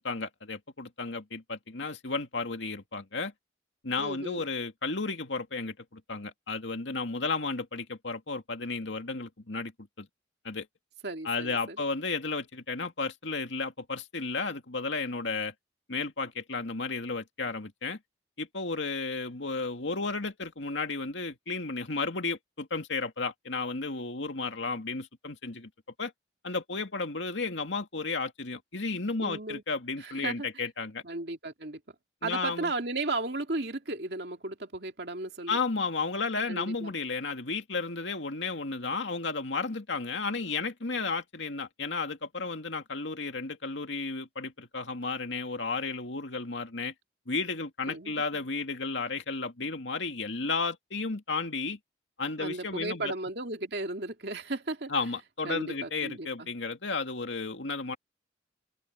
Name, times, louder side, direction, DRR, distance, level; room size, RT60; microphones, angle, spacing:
voice 1, 0.0-3.3 3.8-9.7 10.0-10.1 10.4-10.7 11.2-15.5 15.9-18.0 18.4-25.7 26.0-26.1 26.4-31.0 32.2-32.7 35.5-46.9 47.3-51.8 52.2-53.1 54.9-58.0, left 4 dB, 75° left, 2.3 m, -33 dB
voice 2, 4.0-4.4 11.0-11.8 29.2-29.6 30.0-30.5 31.0-31.8 32.2-35.6 36.5-37.0 47.9-48.5 52.4-54.9 55.4-56.5, right 2 dB, 55° right, 2.7 m, -35 dB
open air
head